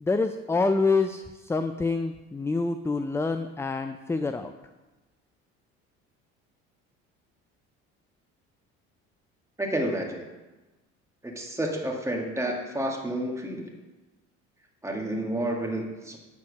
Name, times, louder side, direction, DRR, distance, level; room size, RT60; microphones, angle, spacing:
voice 1, 0.0-4.5, left 3 dB, 10° left, 9 dB, 0.4 m, -27 dB
voice 2, 9.6-10.3 11.2-13.7 14.8-16.2, right 1 dB, 10° right, 0 dB, 1.9 m, -30 dB
9.4 x 4.4 x 6.4 m, 1.1 s
hypercardioid pair, 75°, 33 cm